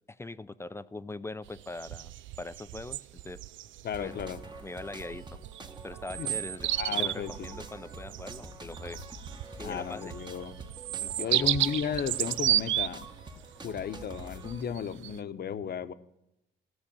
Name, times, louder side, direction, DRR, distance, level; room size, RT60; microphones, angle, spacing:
voice 1, 0.1-2.1 2.4-3.4 4.0-4.2 4.6-5.3 5.8-6.7 7.0-9.0 9.6-10.1 11.0-11.5, left 2 dB, 15° left, 14 dB, 0.5 m, -41 dB
sound 1, 1.4-15.2, right 13 dB, 75° right, 0.4 m, -33 dB
voice 2, 3.8-4.4 6.2-6.3 6.8-7.3 9.6-10.6 11.1-13.1 13.6-15.9, left 7 dB, 55° left, 12 dB, 0.9 m, -34 dB
sound 2, 3.9-14.6, right 2 dB, 20° right, 1.3 m, -46 dB
14.5 x 6.5 x 8.6 m, 0.86 s
cardioid pair, 90°, 20 cm